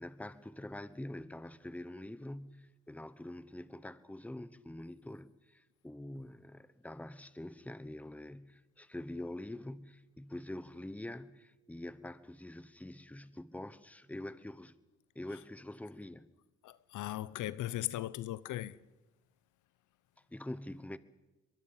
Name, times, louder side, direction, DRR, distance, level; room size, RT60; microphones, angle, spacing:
voice 1, 0.0-14.7 15.1-16.3 20.3-21.0, left 1 dB, 5° left, 1.0 m, -45 dB
voice 2, 16.6-18.7, left 14 dB, 80° left, 0.8 m, -38 dB
23.5 x 22.5 x 5.7 m
cardioid pair, 90°, 30 cm